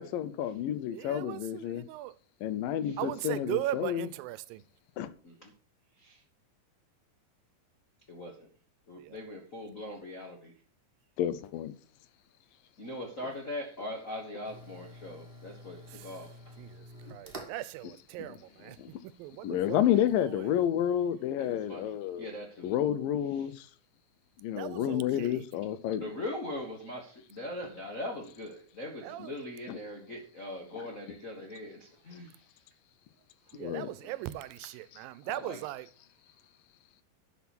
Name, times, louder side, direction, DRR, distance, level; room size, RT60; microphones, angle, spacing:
voice 1, 0.0-1.9 2.4-4.1 5.0-5.1 11.2-11.7 17.8-17.9 18.2-18.3 18.8-18.9 19.4-22.3 22.6-23.5 24.4-26.1 29.7-29.8 30.8-30.9 33.6-33.9, left 10 dB, 80° left, 2.5 m, -30 dB
voice 2, 0.9-2.1 3.0-4.6 9.0-9.2 15.9-16.1 16.6-16.8 17.1-18.8 19.0-19.8 20.2-20.4 24.5-25.5 29.0-29.3 33.5-35.9, right 16 dB, 85° right, 2.3 m, -38 dB
voice 3, 8.1-8.5 8.9-10.5 12.8-16.5 21.4-22.7 23.3-23.5 25.9-32.4 34.0-34.1 35.3-35.6, left 1 dB, 55° left, 0.8 m, -41 dB
sound 1, 14.4-20.4, right 1 dB, 25° right, 1.1 m, -51 dB
11.5 x 6.1 x 6.0 m
omnidirectional pair, 4.0 m